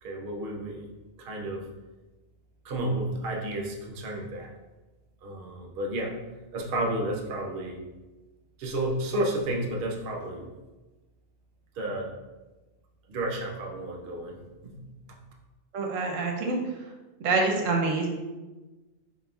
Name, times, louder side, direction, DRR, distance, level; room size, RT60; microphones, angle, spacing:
voice 1, 0.0-0.9 1.2-1.7 2.6-4.5 5.2-6.1 6.5-7.8 8.6-10.5 11.7-12.1 13.1-14.8 15.1-15.2, right 1 dB, 55° right, 0 dB, 0.7 m, -31 dB
voice 2, 15.7-16.9 17.2-18.1, right 3 dB, 75° right, 2 dB, 1.0 m, -26 dB
4.1 x 3.8 x 2.3 m, 1.2 s
omnidirectional pair, 1.4 m